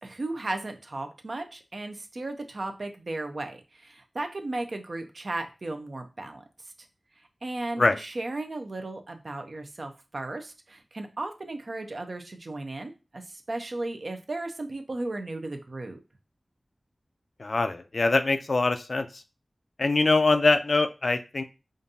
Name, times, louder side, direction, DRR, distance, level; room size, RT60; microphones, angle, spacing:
voice 1, 0.0-6.4 7.4-16.0, right 2 dB, 60° right, 5 dB, 0.6 m, -35 dB
voice 2, 17.4-19.2 19.8-21.4, left 3 dB, 65° left, 8 dB, 0.4 m, -23 dB
5.1 x 2.5 x 2.7 m, 0.30 s
wide cardioid pair, 65°, 0 cm